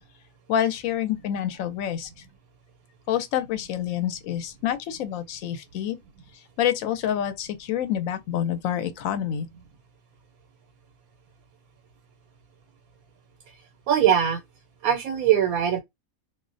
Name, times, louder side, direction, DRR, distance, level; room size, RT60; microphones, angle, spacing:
voice 1, 0.5-2.1 3.1-6.0 6.6-9.5, left 10 dB, 75° left, 0.9 m, -27 dB
voice 2, 13.9-14.4 14.8-15.8, right 9 dB, 85° right, 1.0 m, -21 dB
2.5 x 2.0 x 2.5 m
omnidirectional pair, 1.5 m